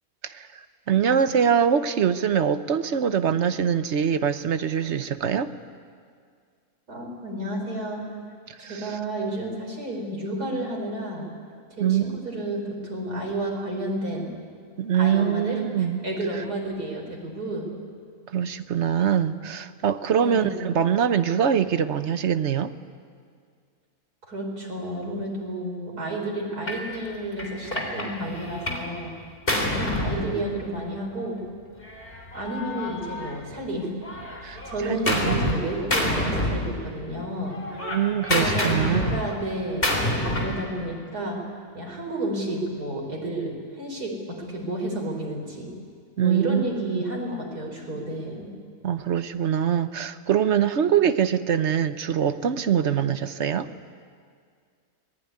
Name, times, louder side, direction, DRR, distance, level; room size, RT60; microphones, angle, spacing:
voice 1, 0.9-5.5 8.5-8.9 11.8-12.1 14.8-16.0 18.3-22.7 34.4-35.6 37.8-39.2 46.2-47.1 48.8-53.7, right 8 dB, 50° right, 11 dB, 1.1 m, -23 dB
voice 2, 6.9-8.0 8.6-11.3 11.8-14.3 14.9-17.7 20.1-20.7 24.2-29.1 29.6-31.4 32.3-33.9 34.4-37.6 38.3-41.4 41.7-45.7 46.2-48.5, right 1 dB, 90° right, 0 dB, 5.5 m, -31 dB
Gunshot gunfire, 26.7-26.9 27.4-28.9 29.2-30.9 31.8-33.7 34.0-35.6 35.9-37.1 37.4-40.6, left 1 dB, 35° left, 3.8 m, -27 dB
26.0 x 19.5 x 9.7 m, 2.1 s
omnidirectional pair, 1.6 m